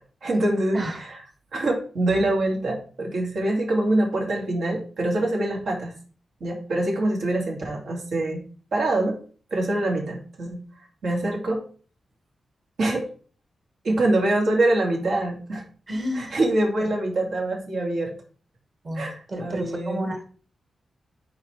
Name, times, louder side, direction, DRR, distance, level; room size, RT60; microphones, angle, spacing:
voice 1, 0.2-1.2 1.5-5.9 6.4-8.4 8.7-9.2 9.5-10.6 11.0-11.6 12.8-13.1 13.8-15.6 16.1-18.1 18.9-20.0, right 1 dB, 75° right, -1 dB, 2.7 m, -24 dB
voice 2, 15.9-16.4 16.8-16.9 18.8-20.2, equal, 45° right, 4 dB, 2.0 m, -30 dB
10.5 x 4.2 x 3.4 m, 0.41 s
cardioid pair, 100°, 0 cm